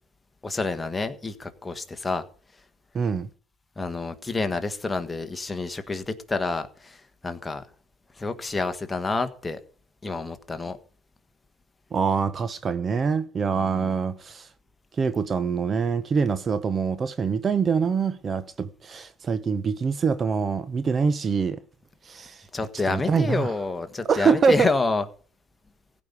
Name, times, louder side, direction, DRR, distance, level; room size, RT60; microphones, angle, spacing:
voice 1, 0.4-2.2 3.8-7.0 7.2-7.6 8.2-9.6 10.0-10.8 13.5-14.0 22.5-25.0, left 3 dB, 15° left, 1.5 m, -28 dB
voice 2, 2.9-3.3 11.9-14.5 15.0-21.6 22.0-22.4 22.9-23.5 24.1-24.7, right 5 dB, 30° right, 0.7 m, -24 dB
15.5 x 5.3 x 9.7 m
cardioid pair, 115°, 0 cm